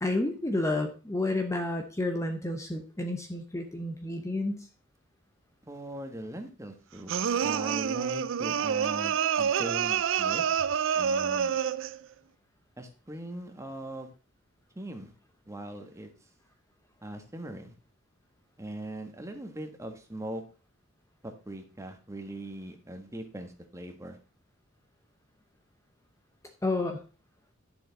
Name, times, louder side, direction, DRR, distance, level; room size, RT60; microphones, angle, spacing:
voice 1, 0.0-4.6 26.6-27.0, left 2 dB, 15° left, 5 dB, 0.9 m, -30 dB
voice 2, 5.7-7.1 7.4-10.4 10.9-11.5 12.8-14.1 14.7-15.1 15.5-16.1 17.0-17.7 18.6-20.4 21.2-24.2, right 1 dB, 15° right, 5 dB, 1.5 m, -40 dB
sound 1, 7.1-12.0, right 8 dB, 65° right, 0.5 m, -27 dB
11.5 x 7.0 x 4.1 m, 0.35 s
head